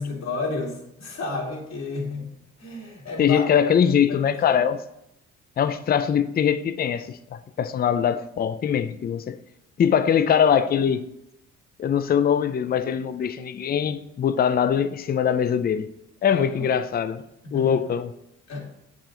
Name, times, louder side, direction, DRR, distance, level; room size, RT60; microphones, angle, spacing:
voice 1, 0.0-2.3 2.6-3.4 4.1-4.6 16.3-16.7 17.4-17.8 18.5-18.6, left 3 dB, 60° left, 2.2 m, -32 dB
voice 2, 3.2-4.8 5.6-9.4 9.8-11.0 11.8-15.9 16.2-17.2 17.5-18.1, left 8 dB, 30° left, 0.4 m, -22 dB
7.3 x 4.9 x 3.8 m
cardioid pair, 90°, 30 cm